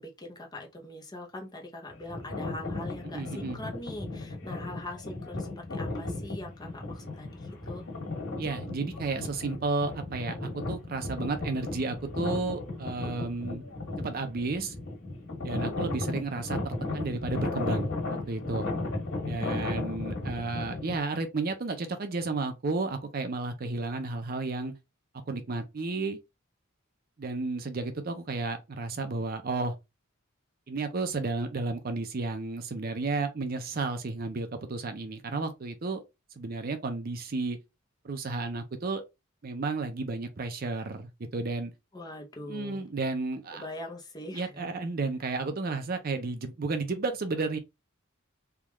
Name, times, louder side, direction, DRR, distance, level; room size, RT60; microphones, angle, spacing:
voice 1, 0.0-7.9 41.9-42.9 43.5-44.7, left 1 dB, 20° left, 0.6 m, -42 dB
sound 1, 1.9-21.0, left 2 dB, 65° left, 1.8 m, -35 dB
voice 2, 3.0-3.6 8.4-13.6 14.0-14.7 15.4-17.9 18.3-18.7 19.2-24.7 25.3-26.2 27.2-29.7 30.7-36.0 36.4-37.6 38.0-39.0 39.4-41.7 42.5-43.6 44.3-47.6, right 3 dB, 45° right, 0.5 m, -32 dB
3.5 x 2.3 x 3.0 m
head